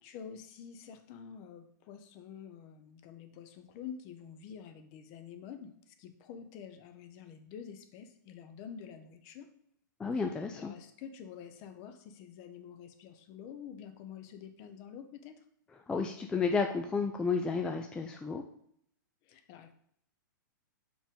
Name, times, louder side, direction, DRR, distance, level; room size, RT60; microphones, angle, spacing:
voice 1, 0.0-9.5 10.3-15.5 19.2-19.7, left 7 dB, 35° left, 8 dB, 0.7 m, -48 dB
voice 2, 10.0-10.7 15.9-18.4, left 5 dB, 10° left, 4 dB, 0.3 m, -32 dB
5.0 x 3.6 x 5.3 m, 0.67 s
hypercardioid pair, 140°, 11 cm